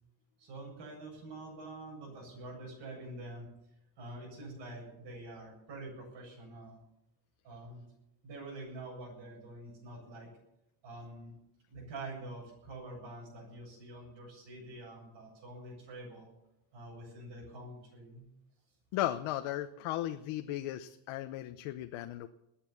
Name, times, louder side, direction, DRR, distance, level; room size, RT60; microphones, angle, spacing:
voice 1, 0.4-3.5 4.0-6.8 7.4-7.9 8.2-10.3 10.8-11.4 11.7-16.3 16.7-18.2, right 2 dB, 60° right, -2 dB, 7.6 m, -46 dB
voice 2, 18.9-22.3, left 13 dB, 90° left, 7 dB, 1.0 m, -36 dB
21.0 x 8.8 x 7.1 m, 0.84 s
cardioid pair, 165°, 49 cm